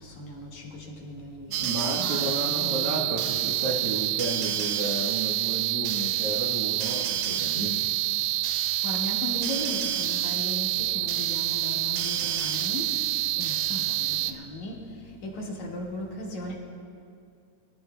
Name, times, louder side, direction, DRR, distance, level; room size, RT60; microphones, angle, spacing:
voice 1, 0.0-3.1 8.5-13.0 13.4-16.6, left 1 dB, 65° left, -2 dB, 3.1 m, -37 dB
sound 1, 1.5-14.3, right 14 dB, 85° right, 2.1 m, -27 dB
voice 2, 1.6-7.9, right 2 dB, 60° right, -3 dB, 2.0 m, -32 dB
24.5 x 14.5 x 2.2 m, 2.3 s
omnidirectional pair, 3.6 m